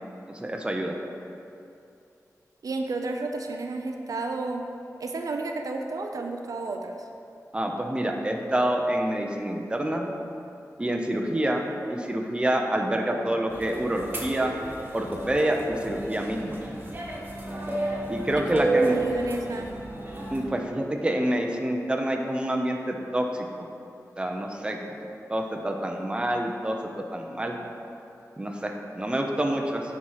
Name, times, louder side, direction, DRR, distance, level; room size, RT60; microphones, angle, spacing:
voice 1, 0.3-0.9 7.5-10.1 10.8-14.5 14.9-16.6 18.1-19.0 20.3-23.7 24.2-24.8 25.3-26.8 27.1-27.5 28.4-29.8, right 1 dB, 15° right, 2 dB, 0.7 m, -27 dB
voice 2, 2.6-4.6 5.0-7.0 11.3-11.4 18.4-19.7, right 3 dB, 70° right, 3 dB, 0.5 m, -32 dB
sound 1, 13.5-20.4, right 2 dB, 30° right, 1.3 m, -32 dB
9.6 x 4.4 x 4.8 m, 2.7 s
wide cardioid pair, 120°, 6 cm